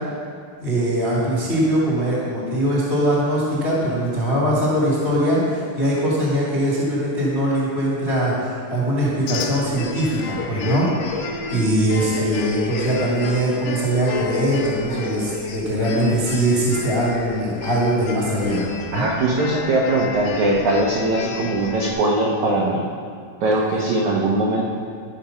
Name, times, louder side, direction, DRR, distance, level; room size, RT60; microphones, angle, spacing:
voice 1, 0.6-11.2 11.5-19.0, right 1 dB, 30° left, -6 dB, 1.1 m, -21 dB
sound 1, 9.3-21.9, left 5 dB, 80° left, 2.5 m, -31 dB
voice 2, 18.9-22.9 23.4-24.6, right 2 dB, 80° right, -3 dB, 1.7 m, -20 dB
13.0 x 5.2 x 5.7 m, 2.1 s
omnidirectional pair, 5.0 m